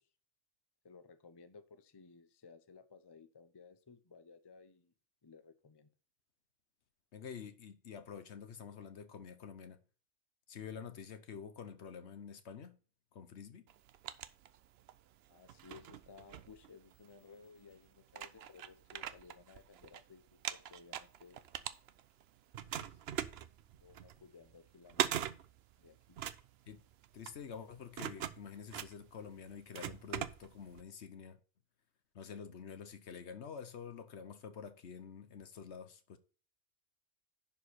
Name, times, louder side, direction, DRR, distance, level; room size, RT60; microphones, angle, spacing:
voice 1, 0.8-4.9 5.2-5.9 15.3-21.4 22.7-23.0 23.8-25.1 25.8-26.2, left 5 dB, 25° left, 0.7 m, -58 dB
voice 2, 7.1-9.8 10.5-12.8 13.1-13.7 26.7-26.8 27.1-31.4 32.1-36.2, left 7 dB, 65° left, 1.1 m, -48 dB
sound 1, 13.7-15.0 15.4-17.1 17.7-17.8 18.1-20.0 20.3-22.2 22.5-30.8, right 10 dB, 65° right, 0.8 m, -41 dB
11.0 x 4.9 x 4.2 m
omnidirectional pair, 1.2 m